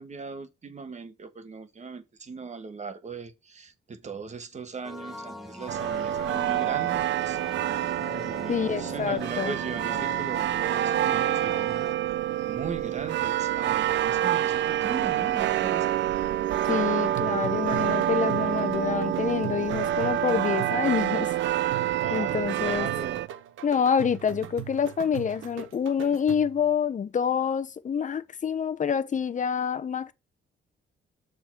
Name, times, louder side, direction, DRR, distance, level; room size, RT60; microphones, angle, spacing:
voice 1, 0.0-7.4 8.1-11.8 12.5-16.0 22.0-23.2, right 5 dB, 35° right, 1.5 m, -38 dB
sound 1, 4.8-11.9, left 2 dB, ahead, 1.4 m, -42 dB
sound 2, 5.7-23.3, right 12 dB, 70° right, 0.5 m, -27 dB
voice 2, 8.5-9.5 16.7-21.3 22.1-22.9 23.6-30.1, left 7 dB, 40° left, 0.9 m, -27 dB
sound 3, 17.1-26.7, right 11 dB, 85° right, 0.9 m, -41 dB
7.1 x 4.0 x 6.1 m
cardioid pair, 90°, 20 cm